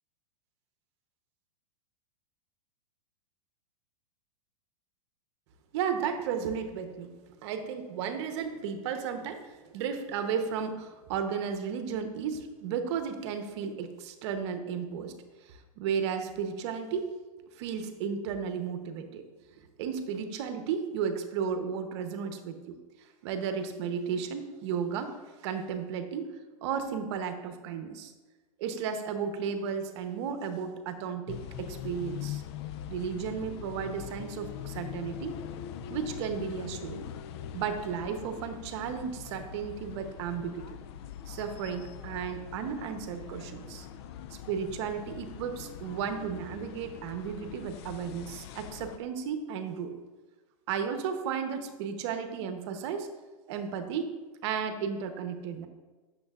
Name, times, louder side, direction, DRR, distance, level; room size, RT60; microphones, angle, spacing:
voice 1, 5.7-15.1 15.4-17.1 17.6-19.2 19.5-22.8 23.2-25.2 25.4-26.3 26.6-28.1 28.6-32.4 32.9-35.4 35.9-37.1 37.5-40.7 41.3-43.9 44.5-49.9 50.7-53.1 53.5-54.1 54.4-55.7, right 7 dB, 50° right, 7 dB, 0.9 m, -34 dB
sound 1, 31.3-49.0, left 9 dB, 50° left, 0.4 m, -42 dB
8.9 x 6.7 x 2.4 m, 1.3 s
hypercardioid pair, 135°, 18 cm